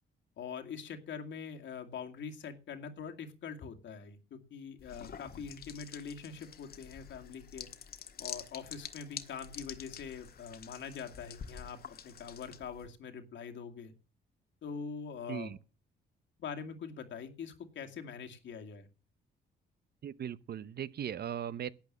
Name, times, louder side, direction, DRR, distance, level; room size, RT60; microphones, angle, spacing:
voice 1, 0.4-7.7 8.2-13.9 14.6-15.5 16.4-18.9, left 6 dB, 70° left, 2.3 m, -44 dB
sound 1, 4.8-12.9, left 7 dB, 50° left, 1.5 m, -47 dB
voice 2, 20.0-21.7, right 9 dB, 55° right, 0.8 m, -38 dB
12.0 x 8.5 x 7.4 m
cardioid pair, 90°, 20 cm